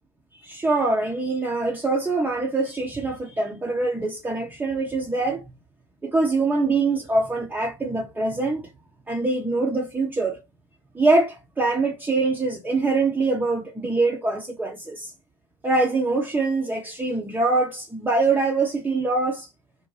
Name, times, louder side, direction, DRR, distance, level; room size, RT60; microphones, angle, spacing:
voice 1, 0.4-5.4 6.0-8.6 9.1-10.4 10.9-15.1 15.6-19.5, right 3 dB, 10° right, 0.7 m, -24 dB
2.7 x 2.1 x 3.1 m
hypercardioid pair, 80°, 15 cm